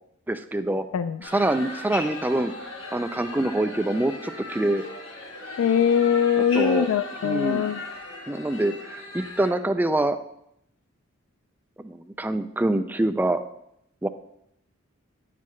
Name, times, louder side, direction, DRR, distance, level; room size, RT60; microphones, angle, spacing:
voice 1, 0.3-0.9 1.2-2.5 2.9-4.8 6.5-6.9 7.2-7.6 8.3-10.2 11.8-13.4 14.0-14.1, right 1 dB, 10° right, 8 dB, 0.3 m, -25 dB
sound 1, 1.2-9.5, left 2 dB, 70° left, 1.7 m, -38 dB
voice 2, 5.6-7.8, left 8 dB, 90° left, 11 dB, 0.3 m, -22 dB
9.3 x 7.6 x 3.1 m, 0.77 s
head